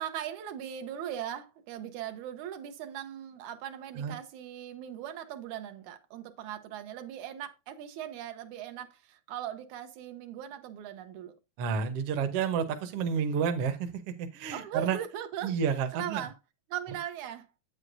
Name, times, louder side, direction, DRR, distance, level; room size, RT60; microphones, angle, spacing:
voice 1, 0.0-11.4 14.5-15.5 15.9-16.4 16.7-17.5, right 10 dB, 85° right, 2.3 m, -39 dB
voice 2, 11.6-15.0 15.4-16.2, right 6 dB, 65° right, 1.7 m, -30 dB
8.5 x 7.9 x 2.6 m
omnidirectional pair, 3.3 m